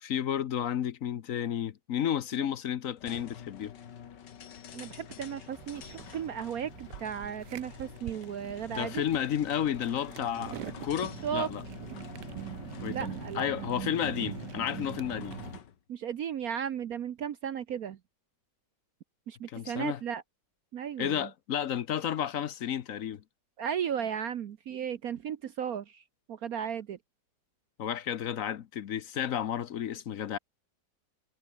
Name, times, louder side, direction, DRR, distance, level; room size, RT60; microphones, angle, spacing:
voice 1, 0.0-3.8 8.7-11.6 12.8-15.4 19.5-20.0 21.0-23.2 27.8-30.4, left 9 dB, 60° left, 1.1 m, -32 dB
sound 1, 3.0-15.8, left 8 dB, 85° left, 2.0 m, -46 dB
voice 2, 4.7-9.0 11.2-11.5 12.9-13.5 15.9-18.0 19.3-20.2 20.7-21.3 23.6-26.0 26.3-27.0, right 8 dB, 60° right, 1.3 m, -35 dB
sound 2, 5.5-15.6, right 15 dB, 80° right, 1.2 m, -43 dB
omnidirectional pair, 1.8 m